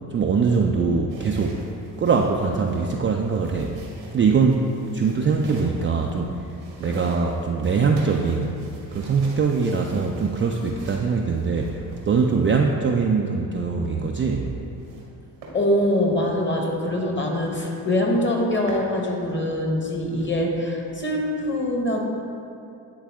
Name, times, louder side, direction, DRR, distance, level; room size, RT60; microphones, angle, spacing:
voice 1, 0.1-1.6 2.0-3.8 4.1-4.7 4.9-6.5 6.8-8.5 8.9-14.5, right 5 dB, 25° right, 0 dB, 0.4 m, -22 dB
sound 1, 1.1-12.7 14.0-15.1 15.4-15.6 16.1-16.2 16.7-16.8 17.0-17.1 17.4-17.9 18.3-18.9, right 2 dB, 85° right, 1.3 m, -44 dB
voice 2, 15.5-22.0, left 1 dB, 25° left, 0 dB, 1.3 m, -23 dB
10.0 x 3.4 x 3.6 m, 2.6 s
supercardioid pair, 60°, 47 cm